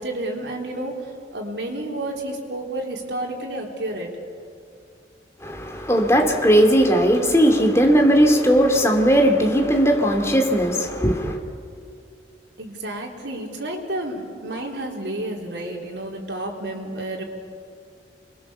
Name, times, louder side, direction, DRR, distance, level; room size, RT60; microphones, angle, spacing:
voice 1, 0.0-4.1 12.6-17.2, right 1 dB, 80° right, 3.7 m, -30 dB
voice 2, 5.4-11.4, equal, 15° left, 2.5 m, -18 dB
27.0 x 22.0 x 7.1 m
head